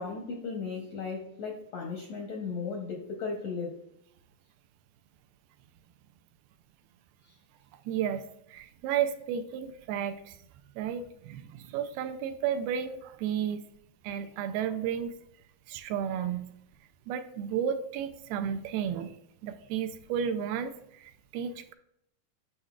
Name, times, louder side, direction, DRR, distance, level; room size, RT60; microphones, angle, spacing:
voice 1, 0.0-3.7 7.3-7.4, left 5 dB, 75° left, -1 dB, 1.6 m, -36 dB
voice 2, 7.9-10.4 10.8-13.6 14.0-15.1 15.7-16.5 17.1-19.2 19.4-20.8 21.0-21.7, right 8 dB, 80° right, 9 dB, 2.4 m, -32 dB
9.8 x 6.3 x 2.4 m, 0.76 s
omnidirectional pair, 4.5 m